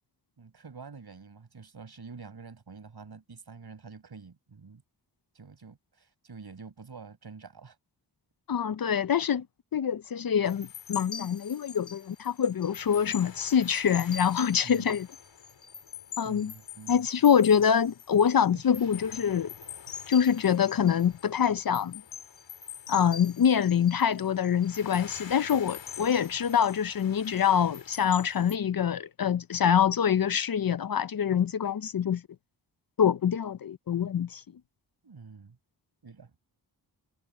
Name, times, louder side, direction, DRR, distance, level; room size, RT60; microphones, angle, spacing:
voice 1, 0.4-4.8 5.3-7.8 14.6-15.0 16.2-17.1 18.5-19.0 35.0-35.6 36.0-36.3, right 5 dB, 60° right, 5.5 m, -47 dB
voice 2, 8.5-9.5 9.7-15.1 16.2-16.5 16.9-19.5 20.1-22.0 22.9-32.2 33.0-34.4, left 8 dB, 50° left, 0.6 m, -25 dB
sound 1, 10.5-28.6, left 7 dB, 80° left, 2.1 m, -44 dB
wide cardioid pair, 110°, 44 cm